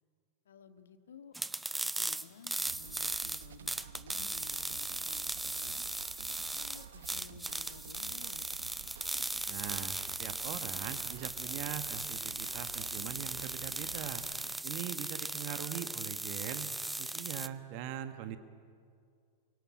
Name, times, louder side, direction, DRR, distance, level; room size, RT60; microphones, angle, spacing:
voice 1, 0.5-1.4 1.6-5.8 6.2-8.5, left 6 dB, 65° left, 8 dB, 1.8 m, -55 dB
sound 1, 1.3-17.5, right 2 dB, 5° right, 0.7 m, -38 dB
sound 2, 2.7-14.5, right 9 dB, 60° right, 1.0 m, -51 dB
voice 2, 9.5-14.2 14.6-16.7 17.0-18.4, right 11 dB, 45° right, 9 dB, 1.5 m, -41 dB
27.5 x 25.0 x 8.6 m, 2.3 s
figure-of-eight pair, 90°, 0 cm